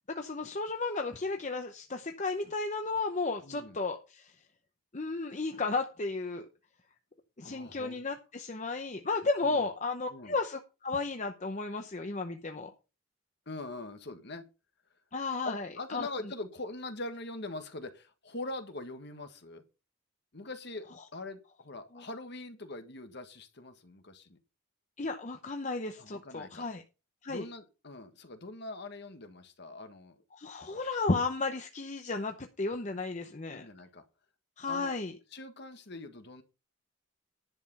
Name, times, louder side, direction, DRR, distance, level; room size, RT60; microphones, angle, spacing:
voice 1, 0.1-4.3 4.9-6.5 7.4-12.7 15.1-16.1 21.9-22.0 25.0-26.8 27.2-27.4 30.3-33.6 34.6-35.2, left 3 dB, 35° left, 5 dB, 0.8 m, -34 dB
voice 2, 3.4-3.8 7.4-8.1 9.4-9.7 10.1-10.3 13.5-14.4 15.4-19.6 20.3-24.4 26.0-26.6 27.3-30.2 30.6-30.7 31.1-31.2 33.5-34.0 34.7-35.0 35.3-36.4, left 2 dB, 50° left, 7 dB, 1.6 m, -43 dB
10.5 x 6.7 x 5.5 m, 0.31 s
head